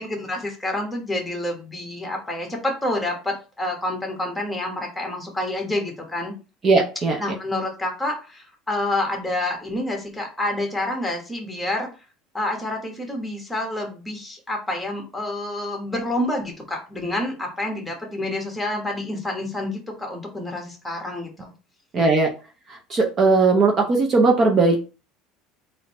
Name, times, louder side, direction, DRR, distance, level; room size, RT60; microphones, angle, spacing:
voice 1, 0.0-6.3 7.2-11.9 12.3-21.5, left 1 dB, 5° left, 1 dB, 1.3 m, -28 dB
voice 2, 6.6-7.2 21.9-22.3 22.9-24.8, right 3 dB, 30° right, 2 dB, 0.8 m, -18 dB
3.8 x 2.7 x 4.2 m, 0.33 s
cardioid pair, 135°, 0 cm